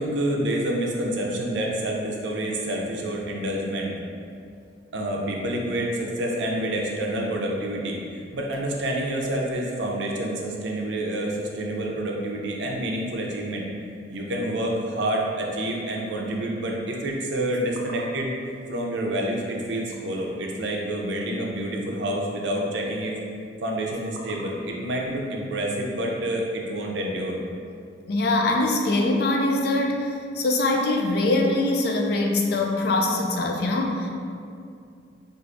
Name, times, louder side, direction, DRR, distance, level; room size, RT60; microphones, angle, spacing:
voice 1, 0.0-3.9 4.9-13.6 14.1-18.3 18.7-23.2 23.6-27.4, right 1 dB, 75° right, -1 dB, 0.5 m, -28 dB
voice 2, 28.1-34.1, left 2 dB, 55° left, 1 dB, 0.4 m, -23 dB
4.5 x 2.5 x 2.5 m, 2.4 s
head